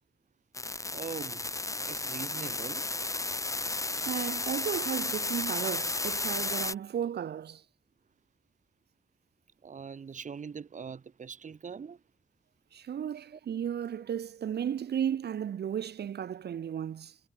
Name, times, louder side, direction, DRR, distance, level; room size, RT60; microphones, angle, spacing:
sound 1, 0.5-6.7, left 2 dB, 20° left, 0.9 m, -33 dB
voice 1, 0.9-1.5 1.8-2.9 9.6-12.0 13.3-13.4, right 6 dB, 50° right, 0.9 m, -42 dB
voice 2, 4.0-7.6 12.7-17.2, right 9 dB, 85° right, 0.8 m, -34 dB
wide cardioid pair, 110°, 17 cm